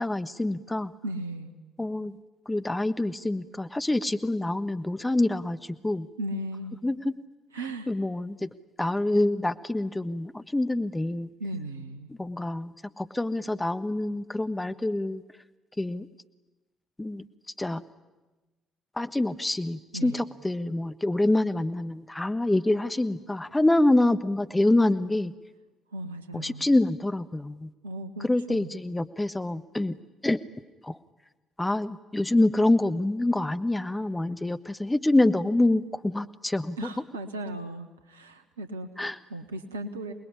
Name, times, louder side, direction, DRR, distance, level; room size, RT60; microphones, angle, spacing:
voice 1, 0.0-0.9 1.8-2.2 2.5-5.6 5.8-6.1 6.8-7.1 7.9-8.5 8.8-11.3 12.1-15.2 15.8-16.1 17.0-17.2 17.6-17.8 19.0-25.3 26.3-27.7 28.2-30.0 30.2-30.4 30.8-31.0 31.6-36.9 39.0-39.2, left 2 dB, 15° left, 10 dB, 1.3 m, -26 dB
voice 2, 1.0-1.5 6.2-6.8 7.5-7.9 11.4-12.1 19.9-20.2 25.9-26.6 27.8-28.7 36.8-38.9 39.3-40.1, right 1 dB, 80° right, 7 dB, 1.4 m, -36 dB
27.0 x 20.5 x 9.9 m, 1.2 s
figure-of-eight pair, 45°, 0 cm